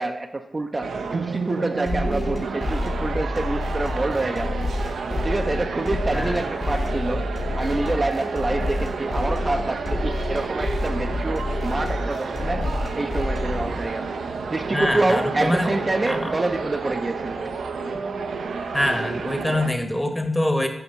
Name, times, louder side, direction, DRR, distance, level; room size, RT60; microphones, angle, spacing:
voice 1, 0.0-4.6 5.2-7.2 7.6-12.6 12.9-14.1 14.5-17.4, right 2 dB, 35° right, 5 dB, 0.5 m, -27 dB
sound 1, 0.8-19.7, right 4 dB, 90° right, 0.6 m, -30 dB
sound 2, 1.9-13.9, left 2 dB, 55° left, 1.3 m, -29 dB
voice 2, 6.1-6.4 14.7-15.8 16.1-16.3 18.7-20.7, left 1 dB, 10° left, 6 dB, 1.0 m, -24 dB
8.0 x 2.9 x 5.7 m, 0.91 s
cardioid pair, 55°, 0 cm